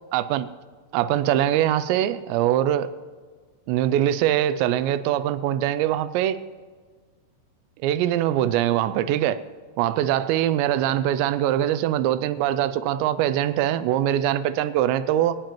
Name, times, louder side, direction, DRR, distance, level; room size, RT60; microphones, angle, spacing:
voice 1, 0.1-0.5 0.9-2.9 3.7-6.4 7.8-9.4 9.8-15.4, right 12 dB, 90° right, 12 dB, 2.8 m, -22 dB
24.5 x 9.0 x 3.0 m, 1.5 s
omnidirectional pair, 5.0 m